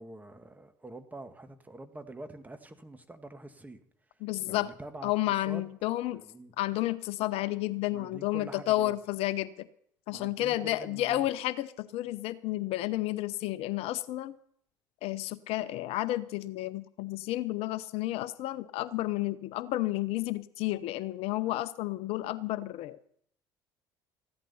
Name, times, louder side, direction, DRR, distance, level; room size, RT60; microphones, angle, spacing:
voice 1, 0.0-3.8 4.5-5.1 5.4-5.7 6.1-6.5 7.9-9.0 10.1-11.3, right 2 dB, 15° right, 8 dB, 1.9 m, -45 dB
voice 2, 4.2-4.7 5.0-6.2 6.6-9.7 10.1-14.3 15.0-23.0, left 16 dB, 60° left, 15 dB, 0.7 m, -31 dB
15.0 x 11.5 x 5.6 m, 0.68 s
hypercardioid pair, 65°, 11 cm